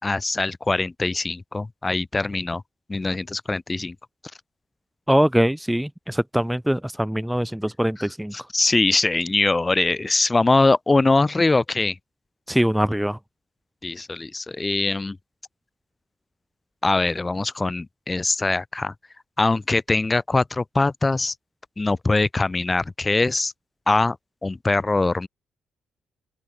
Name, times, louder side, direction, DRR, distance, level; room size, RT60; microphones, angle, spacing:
voice 1, 0.0-2.6 2.9-4.0 8.3-12.0 13.8-15.2 16.8-18.9 19.4-21.3 21.8-23.5 23.9-24.2 24.4-25.3, left 3 dB, 20° left, 5.8 m, -22 dB
voice 2, 5.1-8.3 12.5-13.2, equal, 5° right, 4.7 m, -22 dB
open air
cardioid pair, 90°, 0 cm